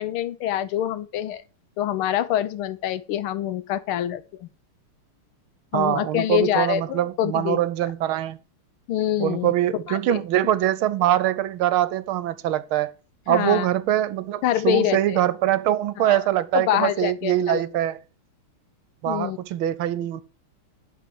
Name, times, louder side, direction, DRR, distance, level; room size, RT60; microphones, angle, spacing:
voice 1, 0.0-1.4 1.8-4.5 5.7-7.6 8.9-9.5 9.9-10.2 13.3-13.7 14.4-15.2 16.0-16.2 16.5-17.6 19.1-19.4, left 11 dB, 75° left, 1.6 m, -25 dB
voice 2, 5.7-8.4 9.2-12.9 13.3-18.0 19.0-20.2, right 12 dB, 75° right, 1.5 m, -23 dB
11.5 x 4.5 x 6.9 m
omnidirectional pair, 2.4 m